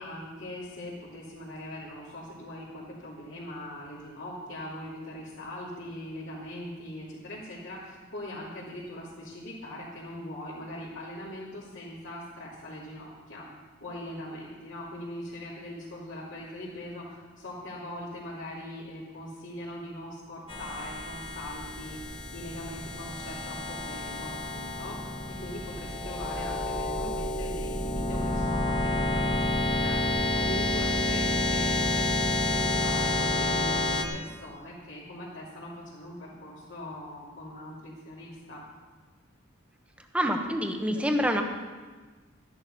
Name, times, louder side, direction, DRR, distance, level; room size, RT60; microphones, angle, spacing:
voice 1, 0.0-13.5 13.8-25.1 25.4-29.4 29.8-38.6, left 1 dB, 65° left, -10 dB, 3.1 m, -41 dB
sound 1, 20.5-34.0, left 2 dB, 25° left, 1.1 m, -29 dB
voice 2, 40.1-41.4, equal, 5° right, 4 dB, 1.1 m, -26 dB
13.0 x 10.5 x 5.5 m, 1.4 s
head